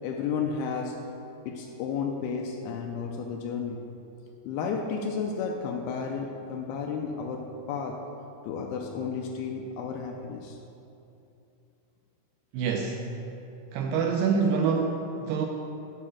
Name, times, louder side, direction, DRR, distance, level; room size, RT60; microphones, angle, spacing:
voice 1, 0.0-1.0 1.5-3.9 4.5-8.0 8.4-10.6, left 5 dB, 80° left, 1 dB, 2.3 m, -32 dB
voice 2, 12.5-13.0 13.7-15.5, right 5 dB, 85° right, 2 dB, 2.0 m, -26 dB
8.6 x 4.8 x 6.3 m, 2.8 s
omnidirectional pair, 4.6 m